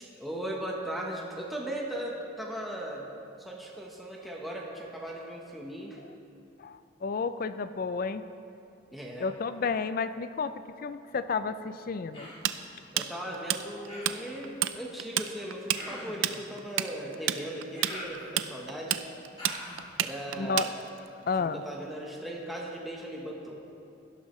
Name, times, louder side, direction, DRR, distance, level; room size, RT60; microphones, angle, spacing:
voice 1, 0.1-3.1 3.4-6.0 8.9-9.3 12.9-19.0 20.0-20.7 21.4-23.6, right 1 dB, ahead, -3 dB, 1.1 m, -38 dB
voice 2, 6.6-8.2 9.2-10.5 10.8-12.3 20.4-20.7 21.3-21.6, left 4 dB, 45° left, 12 dB, 0.4 m, -31 dB
Human voice, 12.1-12.5 13.9-14.3 15.7-16.3 17.7-18.6 19.4-19.9, left 1 dB, 25° left, 2.8 m, -43 dB
Tools, 12.4-14.2 14.4-14.7 15.0-21.1, right 11 dB, 75° right, 0.5 m, -29 dB
18.0 x 12.0 x 3.2 m, 2.7 s
head